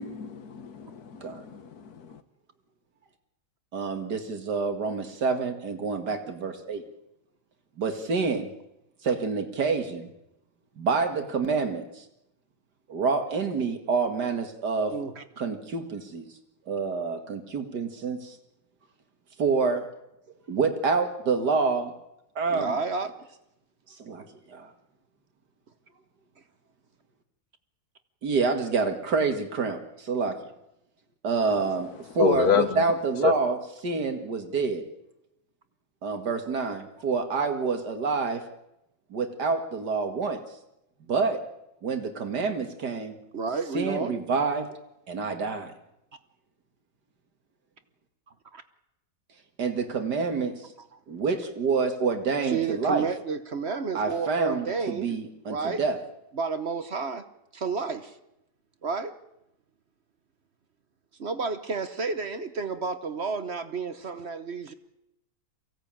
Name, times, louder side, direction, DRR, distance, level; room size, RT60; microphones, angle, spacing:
voice 1, 0.0-2.2 32.1-32.8 33.2-33.4, left 7 dB, 65° left, 11 dB, 1.6 m, -27 dB
voice 2, 3.7-6.8 7.8-8.5 9.0-10.1 10.8-12.0 12.9-14.9 15.4-16.2 16.7-18.4 19.4-19.9 20.5-21.9 22.4-22.8 24.0-24.7 28.2-30.4 31.2-33.6 33.8-34.9 36.0-38.4 39.1-40.4 41.1-41.4 41.8-43.2 43.7-44.7 45.1-45.7 49.6-50.6 51.1-53.1 53.9-56.0, right 4 dB, 75° right, 6 dB, 2.5 m, -27 dB
voice 3, 14.9-15.2 22.5-23.3 43.3-44.2 48.5-48.6 52.4-55.1 55.5-55.8 56.3-57.2 57.5-58.2 58.8-59.1 61.2-64.7, right 5 dB, 45° right, 11 dB, 1.1 m, -31 dB
23.5 x 16.5 x 8.9 m, 0.88 s
omnidirectional pair, 1.8 m